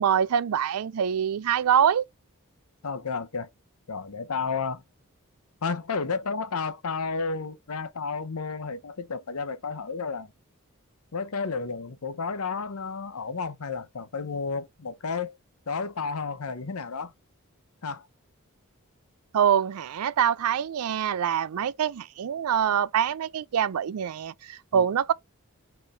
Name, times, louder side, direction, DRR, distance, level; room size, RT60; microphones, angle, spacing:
voice 1, 0.0-2.1 19.3-25.1, right 8 dB, 90° right, 0.4 m, -25 dB
voice 2, 2.8-3.5 3.9-4.8 5.6-10.3 11.1-15.4 15.7-17.1 17.8-18.1 24.7-24.8, left 4 dB, 80° left, 0.8 m, -32 dB
4.4 x 3.2 x 3.4 m
head